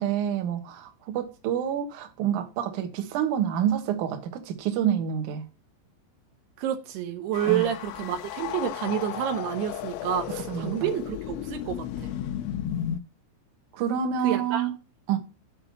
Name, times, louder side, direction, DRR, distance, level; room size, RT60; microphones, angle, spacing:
voice 1, 0.0-5.4 7.4-7.7 10.5-10.9 13.7-14.7 15.1-15.2, right 9 dB, 85° right, 1.7 m, -28 dB
voice 2, 6.6-12.1 14.2-14.7, right 10 dB, 70° right, 2.7 m, -29 dB
sound 1, 7.3-13.0, left 11 dB, 80° left, 2.9 m, -34 dB
7.8 x 4.6 x 6.8 m
omnidirectional pair, 5.7 m